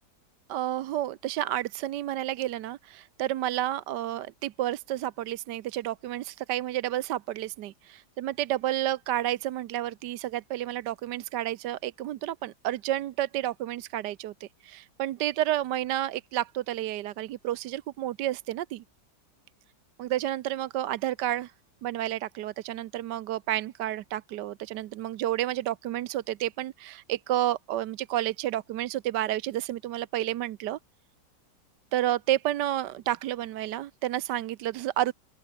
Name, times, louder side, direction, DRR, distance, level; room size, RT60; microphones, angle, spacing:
voice 1, 0.5-18.8 20.0-21.5 21.8-30.8 31.9-35.1, right 13 dB, 80° right, 1.3 m, -30 dB
open air
omnidirectional pair, 1.9 m